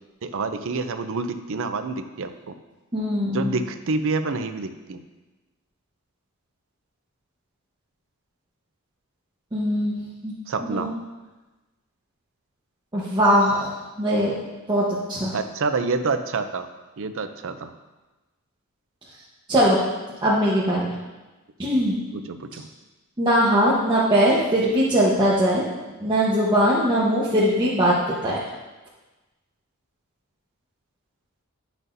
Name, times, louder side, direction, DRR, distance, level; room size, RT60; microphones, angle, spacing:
voice 1, 0.2-2.5 3.3-5.0 10.5-10.9 15.3-16.7 17.0-17.7 22.1-22.7, right 4 dB, 65° right, 9 dB, 0.5 m, -27 dB
voice 2, 2.9-3.5 9.5-10.0 10.2-10.3 10.6-10.9 12.9-14.3 14.7-15.3 19.5-19.8 20.2-20.9 21.6-21.9 23.2-25.6 26.0-28.4, equal, 20° right, -8 dB, 1.1 m, -21 dB
10.5 x 6.1 x 2.7 m, 1.1 s
head